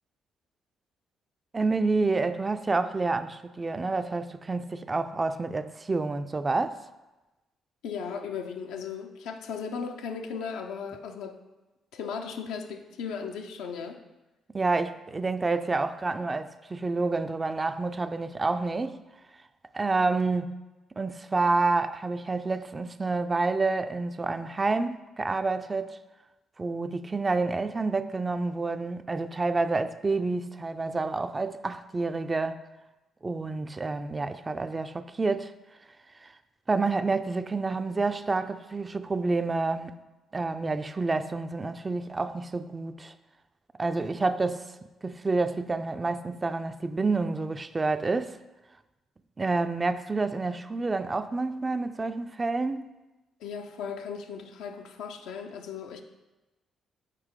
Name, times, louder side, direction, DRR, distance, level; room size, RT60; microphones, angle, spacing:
voice 1, 1.5-6.8 14.5-19.0 19.7-20.6 21.0-26.0 26.6-32.6 33.2-35.5 36.2-36.3 36.7-39.9 40.3-43.1 43.8-48.4 49.4-52.9, right 3 dB, 30° right, 0.4 m, -28 dB
voice 2, 7.8-11.4 11.9-14.0 53.4-56.0, left 6 dB, 70° left, 0.5 m, -36 dB
6.6 x 4.5 x 3.7 m
hypercardioid pair, 45°, 0 cm